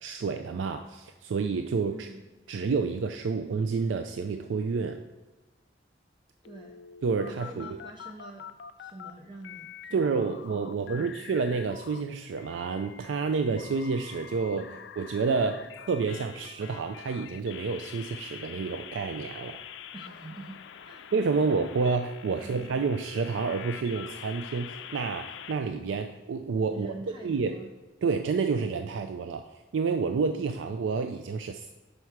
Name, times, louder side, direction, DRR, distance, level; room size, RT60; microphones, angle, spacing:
voice 1, 0.0-2.1 2.5-5.0 7.0-7.8 9.9-14.7 15.0-19.6 21.1-26.9 27.2-27.6 28.0-29.4 29.7-31.7, right 4 dB, 90° right, 7 dB, 0.4 m, -29 dB
voice 2, 1.9-2.2 6.4-6.8 7.2-8.5 8.8-11.1 14.7-14.8 19.9-21.1 21.4-21.5 22.4-22.7 26.7-27.7, right 2 dB, 25° right, 1 dB, 0.6 m, -46 dB
sound 1, 6.4-9.1 9.4-12.0 12.4-25.5, left 8 dB, 75° left, 0.4 m, -45 dB
5.4 x 4.7 x 5.8 m, 1.2 s
head